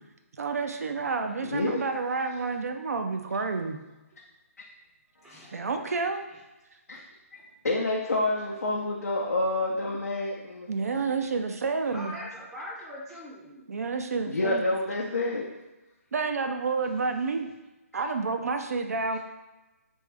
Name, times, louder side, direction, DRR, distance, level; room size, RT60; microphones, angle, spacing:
voice 1, 0.4-3.8 5.5-6.2 10.7-12.1 13.7-14.7 16.1-17.5 17.9-19.2, right 4 dB, 75° right, 5 dB, 0.4 m, -29 dB
voice 2, 1.5-1.8 5.3-5.4 6.9-7.0 7.3-7.4 7.6-10.9 14.3-15.5, left 2 dB, 85° left, -3 dB, 0.6 m, -28 dB
voice 3, 5.2-5.6 6.3-6.4 6.9-7.0 11.9-13.7 19.0-19.2, equal, 5° right, -6 dB, 0.5 m, -42 dB
3.5 x 2.6 x 3.3 m, 1.1 s
figure-of-eight pair, 145°, 8 cm